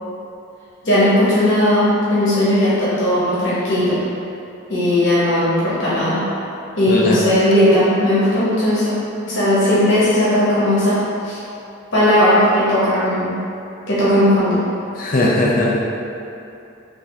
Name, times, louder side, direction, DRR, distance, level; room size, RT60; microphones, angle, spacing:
voice 1, 0.8-4.0 4.7-6.3 6.8-9.0 9.2-11.0 11.2-11.4 11.9-13.3 13.9-14.6, left 1 dB, 70° left, -10 dB, 1.0 m, -16 dB
voice 2, 6.9-7.2 15.0-15.8, left 2 dB, 45° left, -3 dB, 0.4 m, -18 dB
3.2 x 2.7 x 4.0 m, 2.7 s
head